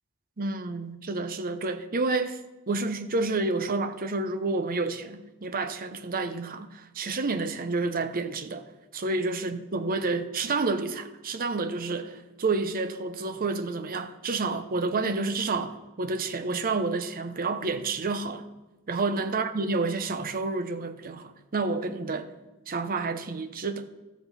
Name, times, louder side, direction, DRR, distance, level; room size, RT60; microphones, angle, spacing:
voice 1, 0.4-2.4 2.7-8.6 8.9-18.5 18.9-22.3 22.7-23.8, right 3 dB, 40° right, 0.7 m, -29 dB
13.0 x 8.1 x 4.1 m
head